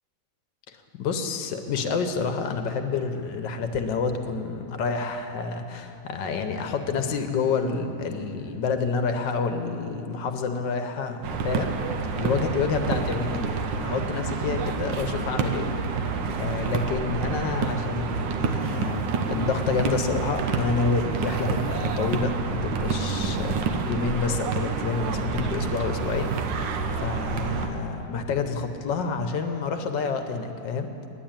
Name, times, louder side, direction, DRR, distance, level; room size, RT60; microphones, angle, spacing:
voice 1, 0.7-11.7 12.2-15.7 16.3-26.3 26.9-30.9, left 5 dB, 75° left, 7 dB, 1.4 m, -28 dB
sound 1, 11.2-27.7, right 4 dB, 75° right, 1.5 m, -28 dB
10.5 x 9.4 x 8.8 m, 2.9 s
omnidirectional pair, 2.1 m